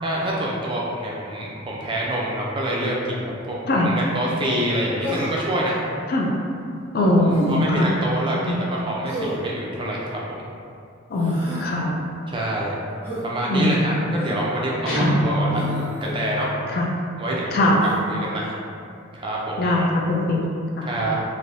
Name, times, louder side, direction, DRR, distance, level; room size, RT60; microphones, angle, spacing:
voice 1, 0.0-5.8 7.2-10.4 12.3-12.8 13.2-16.8 17.2-18.5 19.1-19.7 20.8-21.2, right 1 dB, 25° right, -4 dB, 0.4 m, -26 dB
Human voice, 5.0-5.5 7.3-7.6 9.1-9.5 11.1-11.7 13.0-13.3 14.2-14.5 15.5-16.2 17.8-18.0, equal, 10° left, 0.9 m, -31 dB
voice 2, 6.9-7.9 8.5-8.6 11.1-12.0 13.5-14.2 14.9-15.2 16.7-16.9 17.5-17.8 19.6-21.1, left 1 dB, 50° left, -1 dB, 0.4 m, -21 dB
Guitar, 14.9-16.0, equal, 75° left, 0.9 m, -24 dB
3.3 x 2.6 x 2.6 m, 2.4 s
head